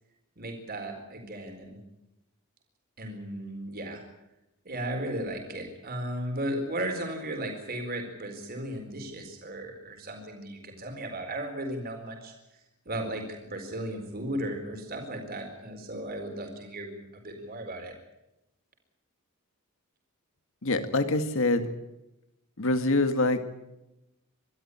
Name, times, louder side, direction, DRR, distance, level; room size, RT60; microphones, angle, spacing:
voice 1, 0.4-1.8 3.0-4.0 4.6-12.3 12.9-17.9, right 1 dB, 45° right, 3 dB, 4.2 m, -35 dB
voice 2, 20.6-21.7 22.6-23.4, left 2 dB, 65° left, 9 dB, 1.9 m, -25 dB
24.0 x 13.0 x 9.8 m, 0.94 s
head